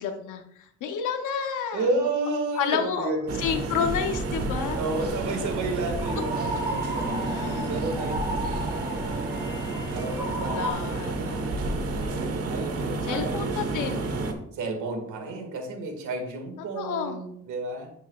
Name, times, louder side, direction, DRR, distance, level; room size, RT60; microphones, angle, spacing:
voice 1, 0.0-1.8 2.6-3.1 3.4-4.8 7.2-7.8 10.4-11.4 13.0-14.1 16.7-17.2, left 7 dB, 85° left, 5 dB, 0.9 m, -30 dB
voice 2, 1.7-3.4 4.8-9.1 9.9-10.9 12.5-13.6 14.5-17.9, right 3 dB, 75° right, 4 dB, 2.0 m, -31 dB
sound 1, 3.3-14.3, right 3 dB, 50° right, 1.4 m, -30 dB
sound 2, 4.6-10.7, equal, 10° right, 2.4 m, -34 dB
10.5 x 6.3 x 2.4 m, 0.69 s
cardioid pair, 90°, 30 cm